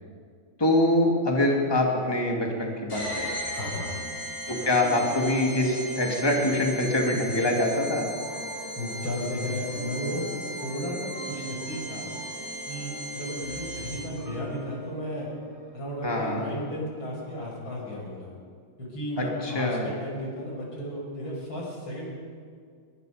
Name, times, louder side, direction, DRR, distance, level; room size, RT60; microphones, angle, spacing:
voice 1, 0.6-3.3 4.5-8.1 16.0-16.4 19.2-19.9, left 1 dB, 10° left, -1 dB, 2.9 m, -24 dB
sound 1, 2.9-14.3, equal, 45° left, 7.2 m, -37 dB
voice 2, 3.6-3.9 8.8-10.2 10.6-12.1 12.7-15.3 15.7-18.3 18.8-22.1, equal, 85° left, -3 dB, 7.0 m, -34 dB
sound 2, 4.5-15.7, right 1 dB, 15° right, 7.9 m, -43 dB
24.0 x 22.0 x 5.3 m, 2.1 s
omnidirectional pair, 2.1 m